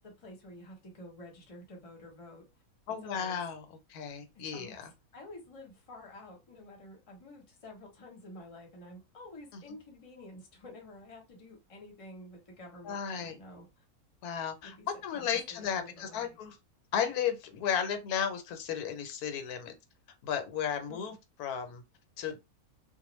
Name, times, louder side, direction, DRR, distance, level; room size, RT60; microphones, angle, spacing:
voice 1, 0.0-2.4 3.0-3.4 4.5-4.8 5.1-13.8 14.6-14.9 15.1-16.4 20.9-21.1, left 1 dB, 30° left, 0.7 m, -50 dB
voice 2, 2.9-3.6 3.9-4.8 9.5-9.6 12.8-13.4 14.2-14.8 15.0-16.6 16.9-19.7 20.2-21.8 22.2-22.4, left 8 dB, 85° left, 1.1 m, -34 dB
2.4 x 2.1 x 3.0 m
omnidirectional pair, 1.6 m